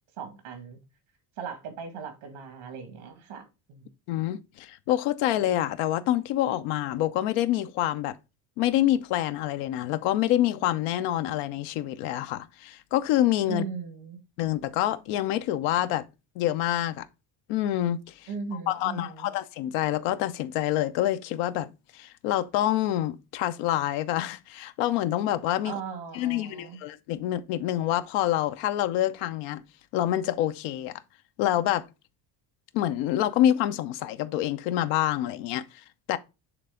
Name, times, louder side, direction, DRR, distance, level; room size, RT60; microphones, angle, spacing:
voice 1, 0.2-0.8 1.4-3.9 13.4-14.2 18.3-19.3 25.6-26.8, right 5 dB, 75° right, 2.1 m, -38 dB
voice 2, 4.1-8.2 8.6-13.6 14.4-16.0 16.4-17.1 17.5-18.1 18.7-21.7 21.9-25.8 26.1-29.6 29.9-30.9 31.4-31.9 32.7-35.6 36.1-36.2, left 13 dB, 80° left, 0.7 m, -26 dB
7.9 x 3.4 x 3.7 m
supercardioid pair, 75°, 48 cm